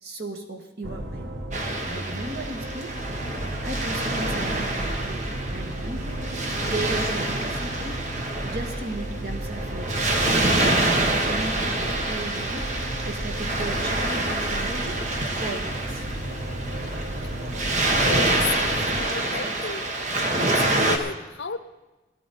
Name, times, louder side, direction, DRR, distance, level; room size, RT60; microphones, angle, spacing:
voice 1, 0.0-1.3 1.8-3.0 3.6-6.2 6.6-8.0 8.4-10.2 10.8-15.0 15.3-16.1, right 2 dB, 60° right, 3 dB, 1.7 m, -36 dB
sound 1, 0.8-19.0, right 1 dB, 90° right, 1.4 m, -33 dB
Waves surf, 1.5-21.0, right 2 dB, 40° right, 1.3 m, -27 dB
voice 2, 18.0-19.9 20.4-21.6, left 5 dB, 85° left, 12 dB, 0.8 m, -33 dB
17.0 x 11.5 x 4.2 m, 1.1 s
head